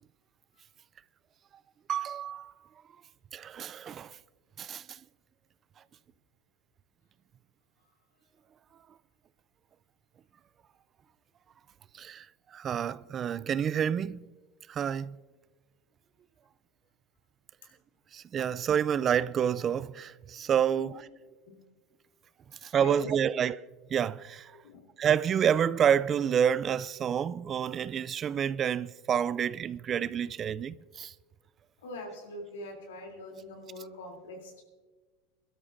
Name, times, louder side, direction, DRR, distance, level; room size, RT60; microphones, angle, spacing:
voice 1, 1.9-2.5 3.3-4.2 4.6-5.0 11.9-12.3 12.5-14.2 14.7-15.2 18.1-20.9 22.6-23.6 23.9-24.5 25.0-31.1, right 8 dB, 35° right, 0.3 m, -28 dB
voice 2, 22.6-23.1 24.6-24.9 31.8-34.6, left 1 dB, 90° left, 3.1 m, -43 dB
22.5 x 12.5 x 2.6 m
supercardioid pair, 100°, 0 cm